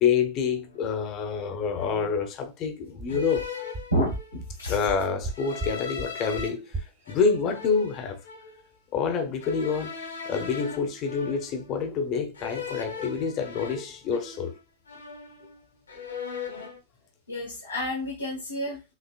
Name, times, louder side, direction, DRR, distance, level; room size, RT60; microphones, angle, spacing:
voice 1, 0.0-3.4 4.7-8.2 8.9-10.0 10.3-14.6, left 6 dB, 35° left, 0.9 m, -27 dB
sound 1, 0.7-0.9 1.7-2.3 3.1-4.5 5.3-6.5 7.0-8.6 9.4-11.8 12.3-14.6 14.9-15.6 15.9-16.8, left 6 dB, 75° left, 1.1 m, -39 dB
sound 2, 2.6-2.7 3.0-3.1 3.4-3.5 3.7-3.8 4.1-4.2 4.5-4.6 4.9-5.3 5.6-5.7 6.0-6.1 6.4-6.5 6.7-6.8, right 2 dB, 35° right, 1.4 m, -33 dB
voice 2, 3.9-4.9 17.3-18.8, equal, 90° right, 1.5 m, -30 dB
5.9 x 2.8 x 2.4 m
figure-of-eight pair, 90°, 0 cm